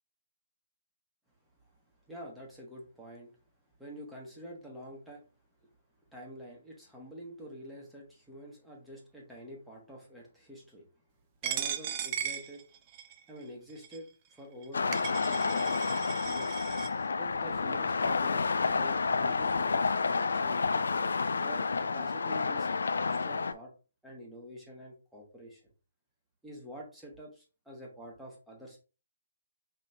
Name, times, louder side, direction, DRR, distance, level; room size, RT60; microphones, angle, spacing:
voice 1, 2.1-3.3 3.8-5.2 6.1-10.8 11.4-12.6 13.3-16.0 16.2-16.6 17.2-19.8 20.1-20.8 21.4-22.7 22.9-23.7 24.0-25.6 26.4-28.8, equal, 5° right, -4 dB, 1.5 m, -47 dB
Coin (dropping), 11.4-13.2 13.8-14.0 14.6-14.7 14.9-16.9, right 9 dB, 30° right, 0.5 m, -37 dB
sound 1, 14.7-23.5, left 4 dB, 65° left, 0.4 m, -30 dB
5.4 x 3.2 x 2.7 m, 0.33 s
figure-of-eight pair, 135°, 0 cm